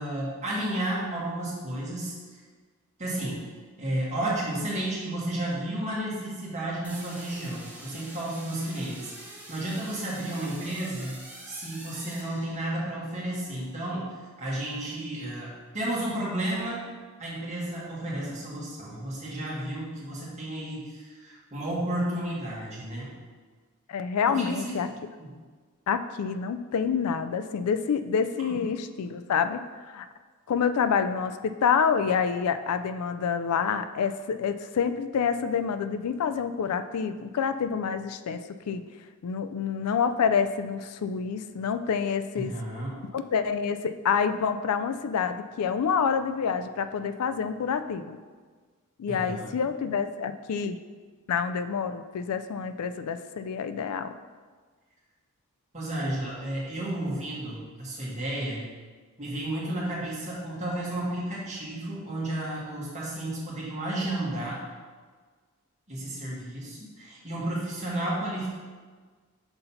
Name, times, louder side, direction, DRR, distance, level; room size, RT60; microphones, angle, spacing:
voice 1, 0.0-2.1 3.0-3.5 3.8-9.1 9.5-11.2 11.5-16.8 17.2-23.1 24.3-25.3 42.3-43.0 49.1-49.6 55.7-58.7 59.2-64.6 65.9-68.5, right 1 dB, 30° right, -5 dB, 1.8 m, -32 dB
sound 1, 6.8-13.0, right 1 dB, 5° right, 1.2 m, -45 dB
voice 2, 23.9-24.9 25.9-29.6 29.9-30.1 30.5-38.8 39.2-42.5 43.1-48.2 49.0-50.8 51.3-54.1, left 6 dB, 80° left, 10 dB, 0.4 m, -27 dB
5.9 x 3.9 x 5.6 m, 1.5 s
head